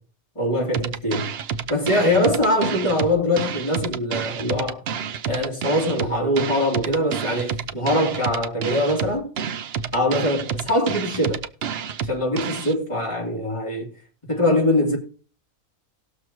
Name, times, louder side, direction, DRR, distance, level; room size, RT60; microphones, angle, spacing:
voice 1, 0.3-1.3 1.7-4.8 5.2-9.3 9.9-11.4 12.0-13.9 14.3-15.0, left 1 dB, 20° left, 2.7 m, -22 dB
sound 1, 0.7-12.7, right 7 dB, 60° right, 0.7 m, -29 dB
18.5 x 6.5 x 3.0 m
omnidirectional pair, 1.5 m